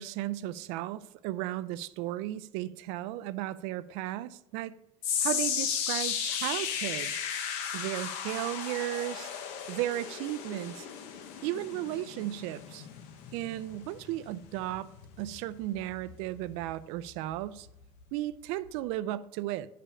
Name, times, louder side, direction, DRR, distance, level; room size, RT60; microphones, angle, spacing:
voice 1, 0.0-4.8 5.2-7.1 7.7-9.3 9.7-10.9 11.4-12.9 13.3-14.9 15.2-17.7 18.1-19.7, right 14 dB, 60° right, 0.4 m, -35 dB
sound 1, 5.0-17.3 17.7-18.0 18.7-18.8, left 8 dB, 65° left, 1.0 m, -35 dB
10.0 x 5.0 x 5.6 m
cardioid pair, 180°, 12 cm